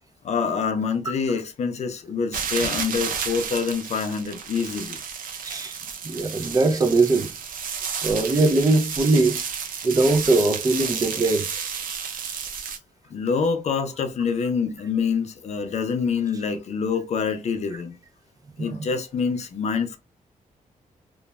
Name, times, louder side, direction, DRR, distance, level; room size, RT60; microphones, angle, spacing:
voice 1, 0.2-5.0 13.1-18.0 18.6-20.0, left 5 dB, 50° left, 0.5 m, -26 dB
sound 1, 2.3-12.8, right 6 dB, 80° right, 0.5 m, -31 dB
voice 2, 5.4-5.8 6.0-7.3 8.0-9.4 9.8-11.4 18.6-18.8, right 3 dB, 25° right, 0.4 m, -21 dB
3.0 x 2.1 x 2.2 m
wide cardioid pair, 155°, 14 cm